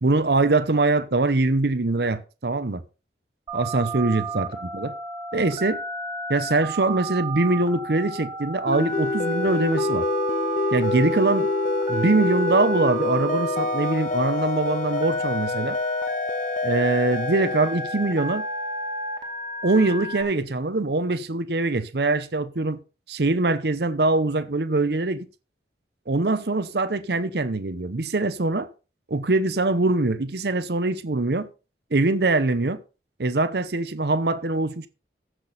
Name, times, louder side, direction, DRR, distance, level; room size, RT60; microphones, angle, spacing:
voice 1, 0.0-2.8 3.5-4.9 5.3-5.8 6.3-10.1 10.7-11.5 11.9-15.8 16.6-18.5 19.6-22.8 23.1-25.3 26.1-28.7 29.1-31.5 31.9-32.8 33.2-34.9, right 2 dB, 60° right, 0.8 m, -23 dB
Telephone, 3.5-20.2, right 2 dB, 25° right, 2.1 m, -32 dB
sound 1, 8.7-19.0, left 3 dB, 45° left, 0.5 m, -27 dB
15.0 x 6.2 x 4.1 m
head